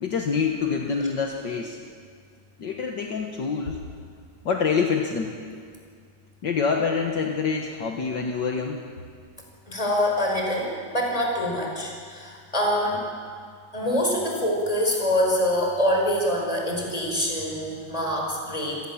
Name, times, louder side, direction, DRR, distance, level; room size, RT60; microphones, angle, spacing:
voice 1, 0.0-1.8 2.6-3.9 4.5-5.4 6.4-8.8, left 5 dB, 65° left, 2 dB, 2.0 m, -26 dB
voice 2, 9.7-13.0 13.7-18.9, equal, 15° left, -1 dB, 5.0 m, -25 dB
28.0 x 18.0 x 7.2 m, 2.1 s
omnidirectional pair, 2.1 m